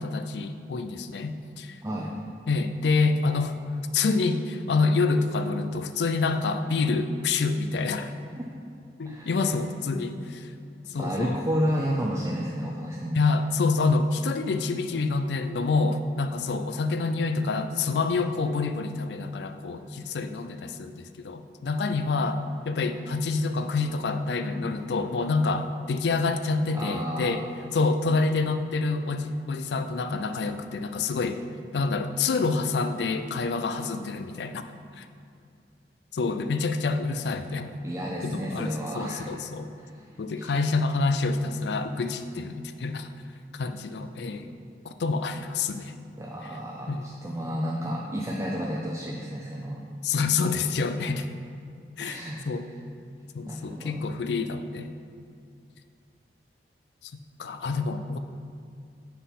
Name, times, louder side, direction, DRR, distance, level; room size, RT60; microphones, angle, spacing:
voice 1, 0.0-1.8 2.5-3.6 3.9-8.1 9.0-10.5 10.9-11.4 13.1-27.4 27.7-31.4 31.7-34.6 35.0-35.1 36.1-37.8 38.2-39.7 40.2-43.1 43.5-44.5 44.8-45.9 46.9-47.0 50.0-51.3 52.0-52.7 53.3-54.9 57.0-57.1 57.4-58.2, left 4 dB, 70° left, 9 dB, 0.4 m, -27 dB
voice 2, 1.8-2.1 8.4-8.5 9.1-9.4 11.0-13.2 26.7-27.5 37.8-39.3 39.8-40.5 46.2-49.8 52.0-52.4 53.5-54.0, equal, 15° right, -3 dB, 0.5 m, -31 dB
7.3 x 5.7 x 4.1 m, 2.3 s
head